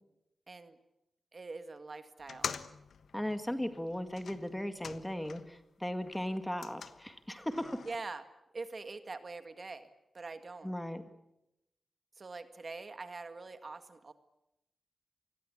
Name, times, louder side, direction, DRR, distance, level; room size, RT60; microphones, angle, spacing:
voice 1, 0.5-0.8 1.3-2.5 7.8-8.2 8.5-9.9 10.1-10.7 12.2-14.1, right 3 dB, 40° right, 9 dB, 1.8 m, -44 dB
sound 1, 2.2-5.6 5.9-8.0, left 6 dB, 85° left, 1.2 m, -45 dB
voice 2, 3.1-7.8 10.6-11.0, left 1 dB, 5° left, 8 dB, 1.9 m, -37 dB
27.5 x 21.5 x 8.6 m, 0.88 s
wide cardioid pair, 125°, 0 cm